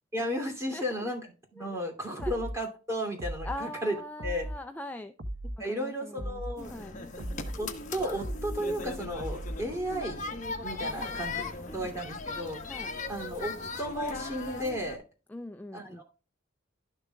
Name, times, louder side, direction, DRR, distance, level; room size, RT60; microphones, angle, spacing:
voice 1, 0.1-4.0 4.2-4.5 5.6-6.8 7.2-7.3 7.6-10.3 10.6-15.0 15.7-16.0, equal, 15° right, 2.7 m, -34 dB
voice 2, 0.7-1.0 1.6-2.4 3.4-5.1 5.7-6.4 6.7-6.9 10.9-11.9 12.7-12.9 15.3-16.0, left 1 dB, 10° left, 0.4 m, -42 dB
sound 1, 2.2-2.6 3.2-3.6 4.2-4.6 5.2-5.6 6.2-6.6 7.2-7.6 8.2-8.6 9.2-9.6, right 1 dB, 65° right, 1.0 m, -36 dB
sound 2, 6.6-15.0, left 3 dB, 40° left, 1.2 m, -38 dB
12.0 x 6.8 x 2.3 m
head